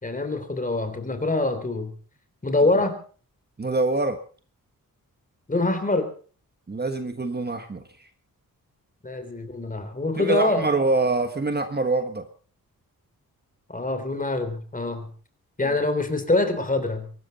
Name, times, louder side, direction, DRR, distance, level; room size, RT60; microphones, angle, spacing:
voice 1, 0.0-1.9 2.4-3.0 5.5-6.1 9.0-10.6 13.7-15.1 15.6-17.1, left 2 dB, 25° left, 9 dB, 3.2 m, -25 dB
voice 2, 3.6-4.2 6.7-8.1 10.2-12.2 15.6-15.8, right 3 dB, 30° right, 8 dB, 1.4 m, -25 dB
23.5 x 12.5 x 4.1 m, 0.40 s
wide cardioid pair, 150°, 35 cm